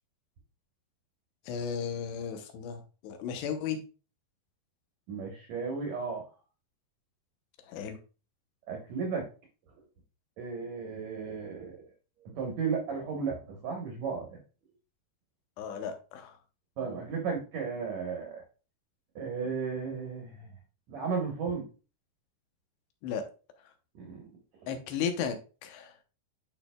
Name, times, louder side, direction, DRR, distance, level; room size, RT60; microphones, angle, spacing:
voice 1, 1.5-3.8 7.7-8.0 15.6-16.4 23.0-23.2 24.7-25.4 25.6-25.9, left 7 dB, 80° left, 6 dB, 3.0 m, -34 dB
voice 2, 5.1-6.2 8.7-9.3 10.4-11.8 12.2-14.4 16.8-18.4 19.1-20.5 20.9-21.7 24.0-24.2, right 5 dB, 75° right, 1 dB, 1.6 m, -34 dB
10.5 x 4.3 x 2.3 m, 0.35 s
omnidirectional pair, 4.9 m